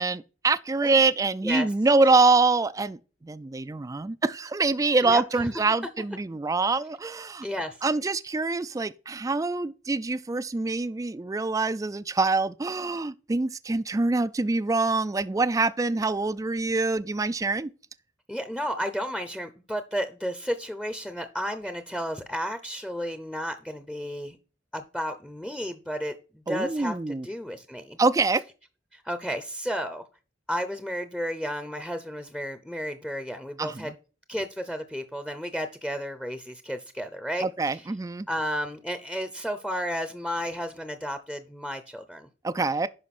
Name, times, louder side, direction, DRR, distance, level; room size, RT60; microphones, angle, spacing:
voice 1, 0.0-7.5 7.8-17.7 26.5-27.3 28.0-28.4 33.6-33.9 37.4-38.3 42.4-42.9, right 3 dB, 20° right, 0.3 m, -25 dB
voice 2, 5.0-5.5 7.4-7.8 18.3-24.4 24.7-28.0 28.9-30.0 30.5-33.9 34.3-37.8 38.3-42.3, equal, 5° left, 0.7 m, -32 dB
11.5 x 5.1 x 4.2 m
head